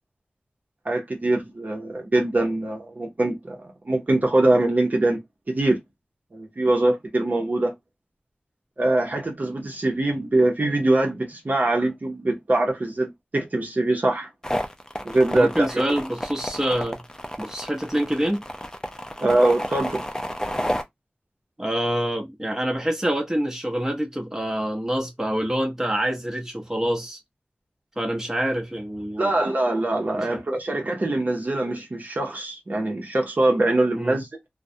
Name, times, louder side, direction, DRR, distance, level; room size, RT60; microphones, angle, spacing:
voice 1, 0.8-3.6 3.8-5.2 5.5-5.8 6.3-7.7 8.8-13.1 13.3-14.3 15.0-15.8 19.2-20.0 29.2-34.3, right 2 dB, 50° right, 0.7 m, -23 dB
sound 1, 14.4-20.8, equal, 15° left, 0.5 m, -31 dB
voice 2, 15.3-17.0 17.4-18.4 21.6-27.2 28.0-29.3 30.1-30.4 33.9-34.2, equal, 15° right, 0.8 m, -26 dB
2.2 x 2.1 x 2.6 m
wide cardioid pair, 45°, 4 cm